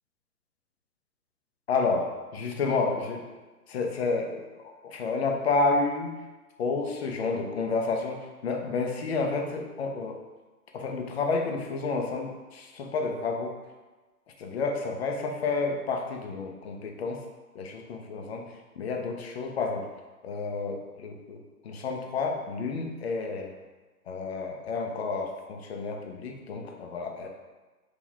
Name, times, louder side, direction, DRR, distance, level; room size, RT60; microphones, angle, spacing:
voice 1, 1.7-3.2 3.7-6.2 6.6-10.2 10.7-13.6 14.4-17.2 17.5-19.9 20.2-23.5 24.1-27.3, left 4 dB, 40° left, 2 dB, 0.6 m, -30 dB
3.1 x 2.9 x 3.8 m, 1.2 s
figure-of-eight pair, 125°, 48 cm